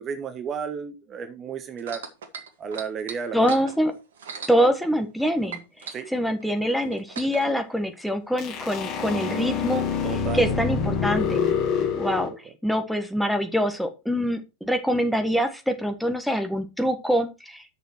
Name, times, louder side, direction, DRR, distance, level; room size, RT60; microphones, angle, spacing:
voice 1, 0.0-2.0 2.6-3.4 5.9-6.1 10.0-10.4 12.3-12.4, right 6 dB, 25° right, 10 dB, 1.2 m, -32 dB
sound 1, 1.8-5.2 5.5-7.5 8.3-8.4, right 6 dB, 60° right, 1.6 m, -39 dB
voice 2, 3.3-3.9 4.5-9.9 10.3-11.5 11.9-12.3 12.6-17.6, equal, ahead, 6 dB, 1.4 m, -25 dB
sound 2, 8.4-12.3, left 6 dB, 35° left, 2.4 m, -26 dB
8.5 x 6.6 x 4.6 m, 0.27 s
figure-of-eight pair, 90°, 0 cm